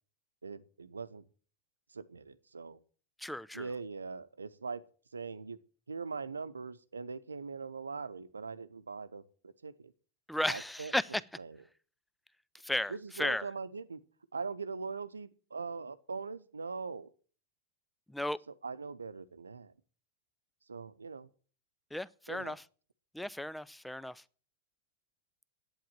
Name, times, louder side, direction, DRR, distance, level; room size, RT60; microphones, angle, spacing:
voice 1, 0.4-1.2 1.9-2.8 3.5-4.8 5.1-5.6 5.9-9.9 10.5-11.6 12.9-14.0 14.3-17.1 18.5-19.7 20.7-21.3 22.3-22.6, right 4 dB, 75° right, 0.8 m, -41 dB
voice 2, 3.2-3.7 10.3-11.2 12.6-12.9 13.2-13.4 18.1-18.4 21.9-22.6 23.1-24.2, left 1 dB, 5° left, 0.5 m, -34 dB
11.0 x 9.0 x 7.5 m
figure-of-eight pair, 90°, 0 cm